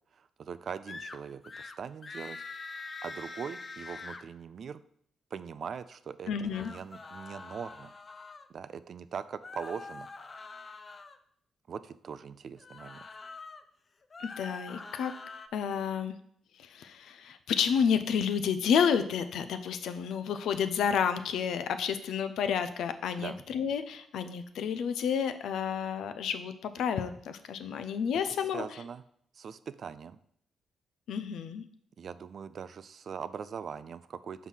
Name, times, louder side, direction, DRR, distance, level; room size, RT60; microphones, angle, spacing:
voice 1, 0.2-2.4 3.0-4.8 5.3-7.9 8.5-10.1 11.7-13.0 23.2-23.4 28.5-29.0 29.3-30.2 32.0-34.5, right 6 dB, 55° right, 14 dB, 0.4 m, -41 dB
sound 1, 0.9-1.2 1.4-1.8 2.0-4.2 6.3-8.5 9.4-11.2 12.6-13.6 14.0-15.5, left 3 dB, 35° left, 0.6 m, -44 dB
voice 2, 6.3-6.7 14.4-15.1 15.5-16.1 16.6-28.6 31.1-31.6, left 7 dB, 80° left, 10 dB, 0.6 m, -30 dB
5.5 x 4.7 x 5.6 m, 0.67 s
cardioid pair, 85°, 0 cm